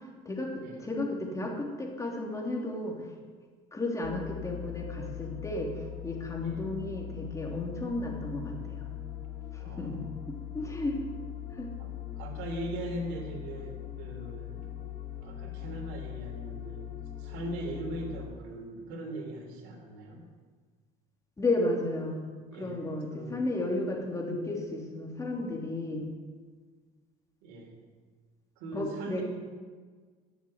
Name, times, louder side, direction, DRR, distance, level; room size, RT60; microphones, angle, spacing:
voice 1, 0.2-3.0 3.7-8.9 9.6-10.0 10.3-11.0 11.6-11.7 21.4-22.2 22.6-26.0 28.7-29.2, left 2 dB, 20° left, 0 dB, 3.2 m, -33 dB
sound 1, 4.0-18.3, left 12 dB, 60° left, 2.3 m, -41 dB
voice 2, 9.6-10.1 11.8-11.9 12.1-14.7 15.2-16.9 17.2-20.2 22.5-23.5 27.4-27.7 28.6-29.2, right 2 dB, 80° right, 1 dB, 3.4 m, -40 dB
11.5 x 7.2 x 9.5 m, 1.5 s
supercardioid pair, 95°, 17 cm